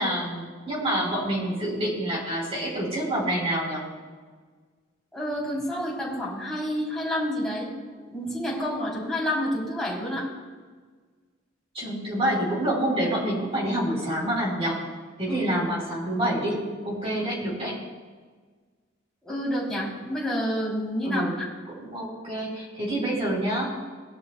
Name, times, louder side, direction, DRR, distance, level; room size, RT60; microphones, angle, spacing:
voice 1, 0.0-3.8 11.7-14.8 15.2-16.6 16.8-17.7 21.1-21.3 21.7-23.7, right 1 dB, 30° right, -4 dB, 3.6 m, -27 dB
voice 2, 5.1-7.7 7.9-10.2 15.2-15.4 19.2-21.5, equal, 5° left, -7 dB, 3.3 m, -29 dB
18.5 x 11.5 x 2.3 m, 1.5 s
head